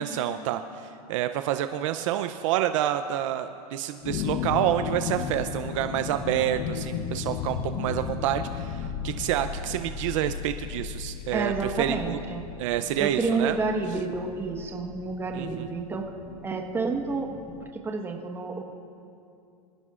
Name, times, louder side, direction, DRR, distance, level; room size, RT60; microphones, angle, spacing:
voice 1, 0.0-12.2 12.6-13.6 15.3-15.7, right 12 dB, 55° right, 9 dB, 0.6 m, -28 dB
sound 1, 4.0-17.7, left 7 dB, 40° left, 0.8 m, -35 dB
voice 2, 11.3-12.4 13.0-16.1 16.4-17.6 17.8-18.6, right 4 dB, 10° right, 2 dB, 1.3 m, -29 dB
26.0 x 15.0 x 2.5 m, 2.6 s
supercardioid pair, 140°, 20 cm